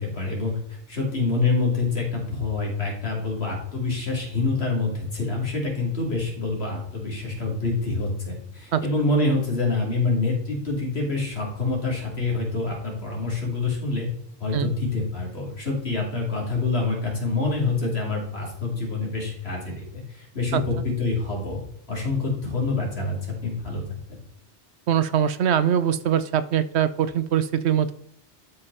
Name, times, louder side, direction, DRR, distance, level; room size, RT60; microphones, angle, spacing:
voice 1, 0.0-14.1 14.4-21.6 21.9-23.8 24.1-24.2, left 3 dB, 60° left, -1 dB, 3.1 m, -26 dB
voice 2, 24.9-27.9, right 9 dB, 70° right, 13 dB, 0.9 m, -22 dB
12.0 x 5.3 x 4.1 m, 0.71 s
omnidirectional pair, 1.2 m